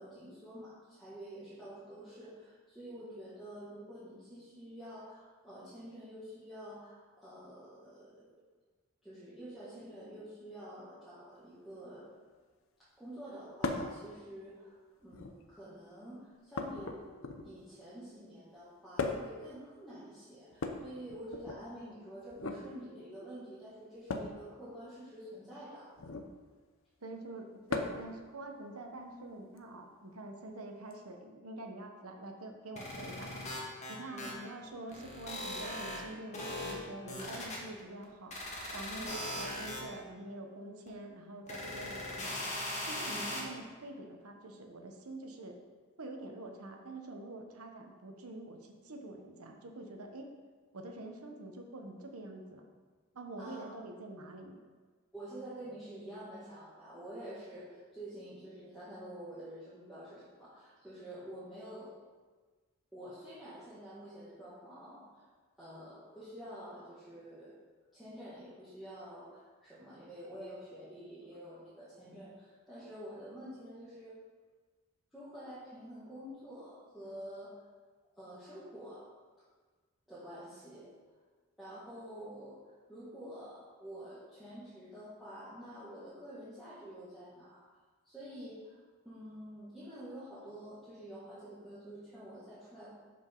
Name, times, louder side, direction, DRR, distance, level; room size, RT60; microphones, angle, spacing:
voice 1, 0.0-8.3 9.0-12.1 13.0-17.1 17.4-25.9 34.1-34.3 39.0-39.1 43.1-43.3 53.4-53.8 55.1-61.9 62.9-65.2 65.6-67.6 67.9-74.1 75.1-77.5 78.2-79.1 80.1-80.9 81.6-82.6 82.9-87.6 88.0-88.8 89.0-93.0, right 1 dB, ahead, -14 dB, 2.0 m, -48 dB
sound 1, 13.6-14.0 15.0-15.5 16.5-17.6 19.0-19.4 20.5-21.6 22.3-22.6 24.1-24.4 26.0-26.3 27.7-28.1 29.6-29.7 30.9-31.0, left 3 dB, 65° left, 0.7 m, -37 dB
voice 2, 27.0-33.4 33.9-38.4 38.7-42.5 42.9-45.6 46.0-50.3 50.7-52.7 53.1-54.6, right 2 dB, 85° right, 3 dB, 1.2 m, -46 dB
sound 2, 32.8-34.3 34.7-36.0 36.3-36.7 37.1-38.0 38.3-39.8 40.9-41.0 41.5-43.4, left 1 dB, 30° left, 1.6 m, -39 dB
11.5 x 5.3 x 3.9 m, 1.4 s
head